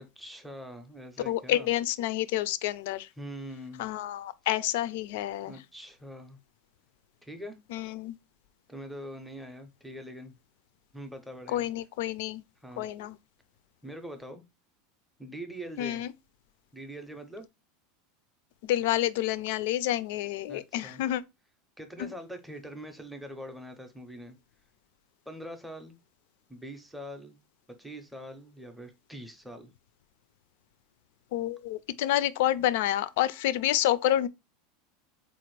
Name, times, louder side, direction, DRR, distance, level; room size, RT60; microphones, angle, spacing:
voice 1, 0.0-1.7 3.2-3.9 5.4-6.4 7.2-7.6 8.7-10.3 10.9-11.7 12.6-12.9 13.8-14.4 15.2-16.0 16.7-17.5 20.5-21.0 21.8-24.4 25.3-26.0 26.5-27.4 27.8-29.7 32.6-32.7, equal, ahead, 0.5 m, -43 dB
voice 2, 1.3-3.1 3.8-5.6 7.7-8.2 11.5-12.4 12.8-13.2 15.8-16.1 18.6-21.2 22.0-22.1 31.3-34.3, left 13 dB, 70° left, 0.3 m, -29 dB
3.9 x 2.5 x 3.0 m
supercardioid pair, 160°, 0 cm